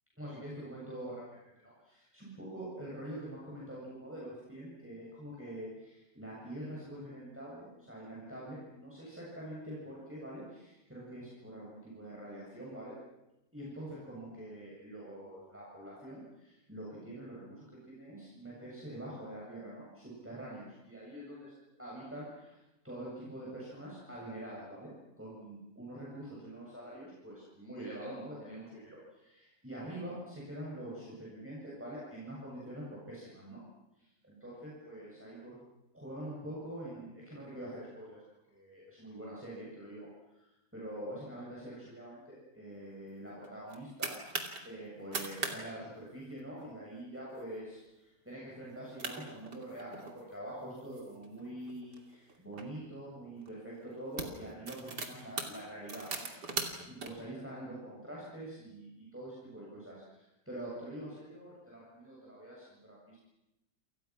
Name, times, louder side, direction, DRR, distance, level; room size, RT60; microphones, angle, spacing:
voice 1, 0.2-13.0 13.5-21.5 21.8-22.6 22.8-24.9 25.2-33.6 34.0-35.6 35.9-38.2 38.5-40.1 40.3-40.5 40.7-44.1 44.6-56.3 56.6-63.2, right 1 dB, 5° right, -6 dB, 7.5 m, -45 dB
sound 1, 43.4-44.6 45.0-45.6 45.8-45.9 46.3-46.6 47.2-47.4 47.9-48.0 48.7-48.8 49.0-50.2 50.8-52.7 53.4-53.6 53.9-57.1, right 3 dB, 75° right, 3.4 m, -40 dB
29.5 x 27.0 x 6.2 m, 0.92 s
omnidirectional pair, 1.8 m